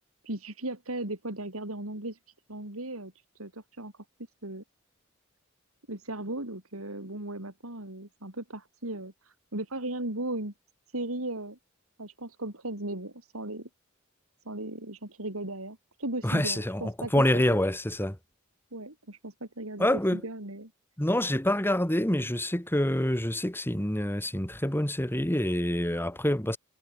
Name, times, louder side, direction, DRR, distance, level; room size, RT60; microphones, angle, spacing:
voice 1, 0.2-2.2 2.5-3.9 4.4-4.6 5.9-10.5 10.9-11.6 12.0-13.7 14.5-17.6 18.7-20.7, right 1 dB, 85° right, 5.2 m, -37 dB
voice 2, 16.2-18.2 19.8-20.2 21.0-26.6, left 1 dB, 10° left, 2.8 m, -26 dB
head